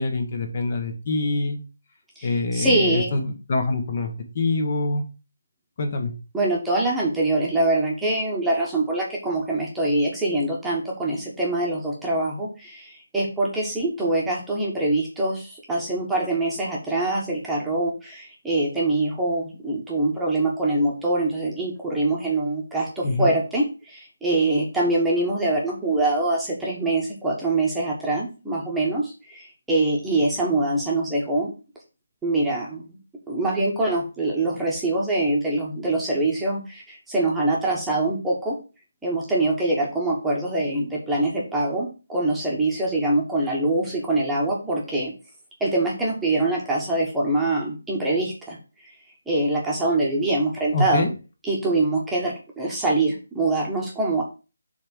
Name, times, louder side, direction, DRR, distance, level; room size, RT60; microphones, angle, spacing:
voice 1, 0.0-1.6 2.2-5.0 5.8-6.1 23.0-23.3 50.7-51.1, left 2 dB, 35° left, 4 dB, 1.3 m, -25 dB
voice 2, 2.2-3.2 6.3-31.5 32.2-33.0 33.3-38.6 39.0-45.1 45.6-48.6 48.9-49.0 49.3-51.0 51.4-54.2, right 2 dB, 5° right, -5 dB, 1.3 m, -24 dB
7.1 x 3.5 x 6.2 m, 0.31 s
hypercardioid pair, 170°, 0 cm